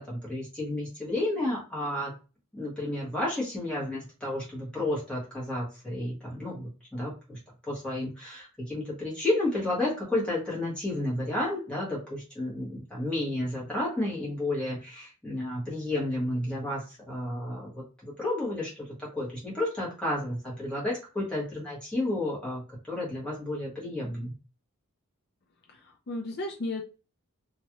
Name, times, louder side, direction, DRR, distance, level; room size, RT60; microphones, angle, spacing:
voice 1, 0.0-2.1 2.5-24.3, left 1 dB, 5° left, -5 dB, 1.4 m, -32 dB
voice 2, 25.7-26.8, left 2 dB, 50° left, 2 dB, 0.5 m, -34 dB
3.0 x 2.4 x 3.0 m, 0.31 s
head